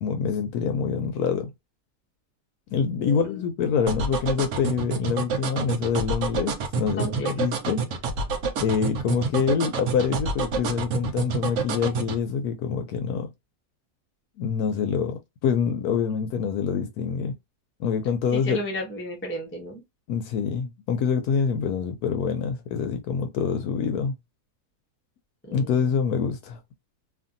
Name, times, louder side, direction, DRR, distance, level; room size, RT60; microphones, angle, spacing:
voice 1, 0.0-1.5 2.7-7.9 8.6-13.3 14.4-17.3 17.8-18.6 20.1-24.1 25.5-26.6, left 6 dB, 75° left, 1.0 m, -26 dB
sound 1, 3.9-12.2, right 5 dB, 65° right, 0.9 m, -27 dB
voice 2, 7.0-7.3 18.3-19.8 25.5-25.7, right 1 dB, 15° left, 0.5 m, -33 dB
2.8 x 2.6 x 2.5 m
omnidirectional pair, 1.7 m